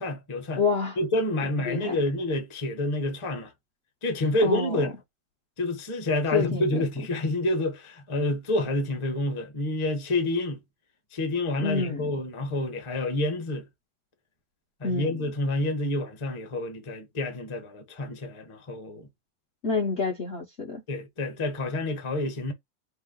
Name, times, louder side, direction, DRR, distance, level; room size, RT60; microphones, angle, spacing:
voice 1, 0.0-0.6 1.0-3.5 4.0-4.9 5.6-10.6 11.1-13.7 14.8-19.1 20.9-22.5, left 1 dB, 25° left, 0.7 m, -28 dB
voice 2, 0.6-1.0 1.6-2.0 4.4-4.9 6.3-6.8 11.6-12.1 14.8-15.2 19.6-20.8, left 4 dB, 50° left, 0.9 m, -28 dB
5.4 x 2.0 x 3.7 m
omnidirectional pair, 2.0 m